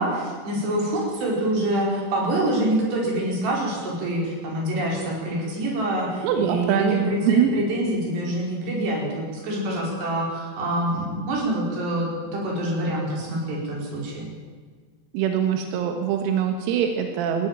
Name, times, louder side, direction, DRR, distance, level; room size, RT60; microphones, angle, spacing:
voice 1, 0.0-14.3, right 1 dB, 55° right, -2 dB, 7.0 m, -26 dB
voice 2, 6.2-7.5 15.1-17.5, right 8 dB, 90° right, 5 dB, 4.2 m, -23 dB
20.5 x 14.5 x 9.1 m, 1.6 s
omnidirectional pair, 6.0 m